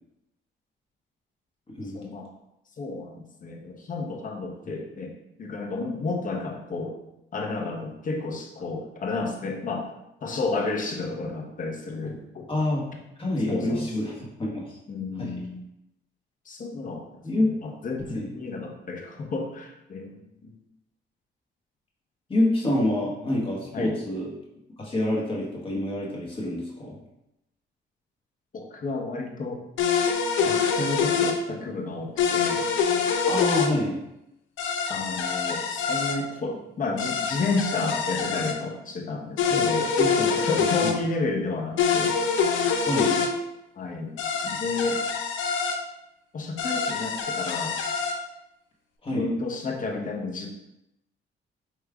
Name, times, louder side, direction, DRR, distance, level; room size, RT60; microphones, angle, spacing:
voice 1, 1.9-2.3 2.8-5.1 5.4-6.9 7.3-9.9 10.2-12.4 13.5-13.9 14.9-15.6 16.5-17.1 17.4-20.6 23.7-23.9 28.5-29.6 30.4-32.7 34.9-39.9 40.3-42.2 43.8-44.1 44.4-45.0 46.3-47.8 49.1-50.5, left 3 dB, 40° left, 1 dB, 0.8 m, -31 dB
voice 2, 12.5-12.8 13.2-14.1 14.4-14.8 15.2-15.3 17.2-17.5 18.1-18.3 22.3-24.3 24.8-26.9 33.3-34.0 39.5-39.6 40.0-40.9 42.9-43.1 49.0-49.3, left 1 dB, 25° left, -4 dB, 1.3 m, -27 dB
sound 1, 29.8-31.4 32.2-33.7 34.6-36.2 37.0-38.6 39.4-41.0 41.8-43.3 44.2-45.8 46.6-48.2, left 6 dB, 75° left, 0.5 m, -25 dB
4.8 x 3.1 x 2.3 m, 0.88 s
cardioid pair, 90°, 20 cm